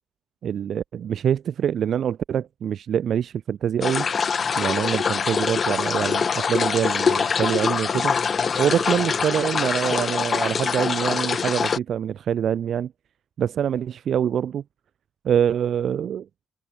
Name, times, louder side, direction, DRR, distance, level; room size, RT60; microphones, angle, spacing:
voice 1, 0.4-4.1 4.6-8.1 8.6-12.9 13.4-14.6 15.2-16.3, right 9 dB, 60° right, 2.0 m, -25 dB
sound 1, 3.8-11.8, left 6 dB, 45° left, 2.5 m, -24 dB
cardioid pair, 90°, 0 cm